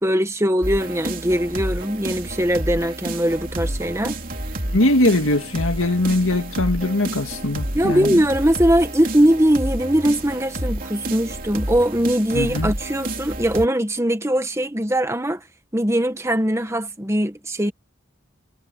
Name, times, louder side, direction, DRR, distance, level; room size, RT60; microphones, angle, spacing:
voice 1, 0.0-4.2 7.7-15.4 15.7-17.7, equal, 15° right, 1.5 m, -21 dB
sound 1, 0.6-13.7, right 1 dB, 40° right, 3.4 m, -30 dB
voice 2, 4.7-8.2 12.3-12.7, left 2 dB, 90° left, 2.1 m, -21 dB
head